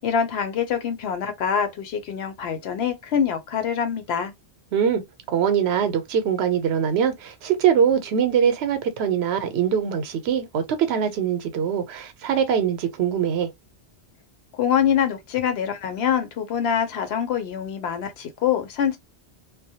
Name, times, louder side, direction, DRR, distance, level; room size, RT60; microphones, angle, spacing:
voice 1, 0.0-4.3 14.5-19.0, left 8 dB, 75° left, 0.9 m, -25 dB
voice 2, 4.7-5.0 5.3-13.5, right 8 dB, 80° right, 0.8 m, -22 dB
2.2 x 2.0 x 2.7 m
omnidirectional pair, 1.1 m